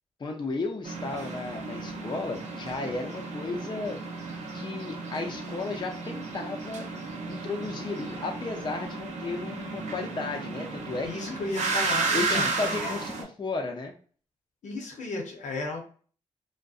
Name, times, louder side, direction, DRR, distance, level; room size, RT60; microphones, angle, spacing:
voice 1, 0.2-4.0 4.5-6.9 7.3-11.4 12.1-13.9, left 3 dB, 35° left, 2 dB, 0.5 m, -34 dB
sound 1, 0.8-13.2, right 3 dB, 65° right, 0.6 m, -33 dB
voice 2, 11.0-13.0 14.6-15.8, left 2 dB, 70° left, 1 dB, 0.7 m, -34 dB
2.6 x 2.1 x 2.3 m, 0.43 s
cardioid pair, 55°, 13 cm